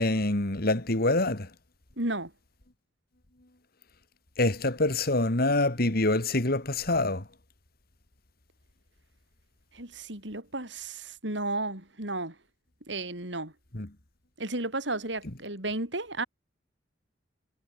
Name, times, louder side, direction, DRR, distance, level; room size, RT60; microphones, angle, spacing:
voice 1, 0.0-1.5 4.4-7.2 13.7-13.9, left 2 dB, 50° left, 2.3 m, -25 dB
voice 2, 2.0-2.3 9.7-12.3 12.9-13.5 14.4-16.3, right 2 dB, 65° right, 6.6 m, -33 dB
head